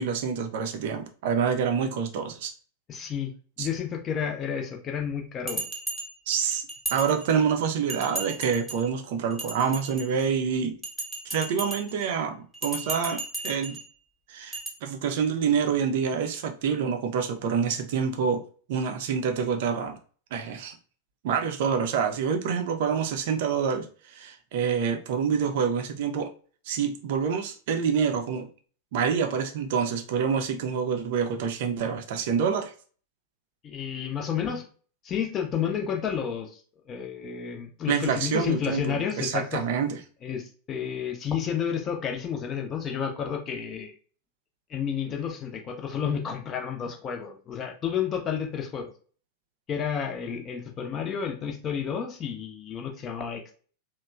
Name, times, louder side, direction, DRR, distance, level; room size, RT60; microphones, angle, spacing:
voice 1, 0.0-2.5 3.6-3.7 6.3-6.6 6.9-10.8 11.3-13.8 14.3-18.4 18.7-20.0 20.3-20.7 21.2-26.3 26.7-28.5 28.9-32.7 37.9-40.0, right 6 dB, 50° right, 5 dB, 0.5 m, -27 dB
voice 2, 2.9-3.3 3.6-5.6 33.6-34.6 35.0-36.6 36.9-39.6 40.2-43.9 44.7-48.9 49.7-53.5, left 7 dB, 30° left, 3 dB, 0.6 m, -31 dB
Bell, 5.5-7.5 7.9-8.9 9.3-10.3 10.8-12.1 12.5-13.9 14.5-14.7, right 2 dB, 5° right, 0.8 m, -35 dB
2.9 x 2.1 x 2.3 m, 0.41 s
figure-of-eight pair, 90°, 0 cm